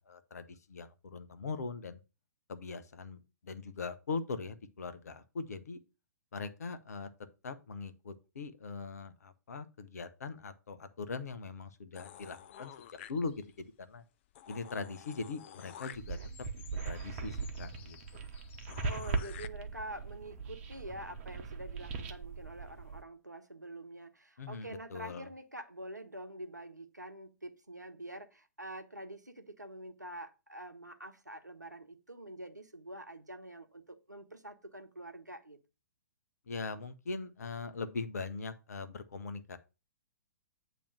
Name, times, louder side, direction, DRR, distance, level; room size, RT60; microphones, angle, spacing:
voice 1, 0.0-2.0 2.5-5.8 6.3-7.1 7.4-12.7 13.1-14.0 14.5-16.2 16.8-18.2 24.4-25.3 36.5-39.6, left 4 dB, 65° left, 0.9 m, -41 dB
sound 1, 12.0-13.6 14.0-14.1 14.3-19.5, left 10 dB, 40° left, 0.5 m, -52 dB
sound 2, 15.9-23.0, right 4 dB, 40° right, 1.0 m, -40 dB
voice 2, 18.8-35.6, right 1 dB, 90° right, 0.9 m, -46 dB
8.6 x 3.1 x 6.0 m
figure-of-eight pair, 115°, 9 cm